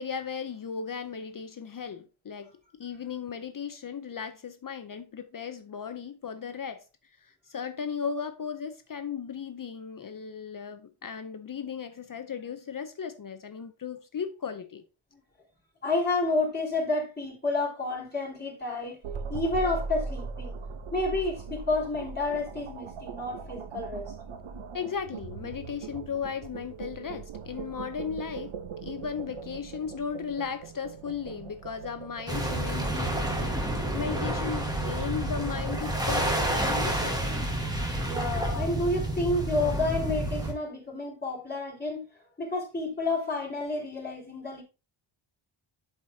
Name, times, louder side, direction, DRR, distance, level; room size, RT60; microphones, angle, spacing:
voice 1, 0.0-2.5 2.8-6.8 7.2-14.8 24.7-28.5 28.8-37.2 38.4-38.7, left 6 dB, 45° left, 0.6 m, -36 dB
voice 2, 15.8-19.0 19.3-20.5 20.9-24.1 38.0-42.0 42.4-44.6, left 2 dB, 20° left, 4.0 m, -30 dB
sound 1, 19.0-36.3, right 5 dB, 80° right, 1.0 m, -40 dB
sound 2, 32.3-40.5, right 1 dB, 10° right, 1.4 m, -29 dB
11.0 x 4.9 x 2.7 m
wide cardioid pair, 140°, 49 cm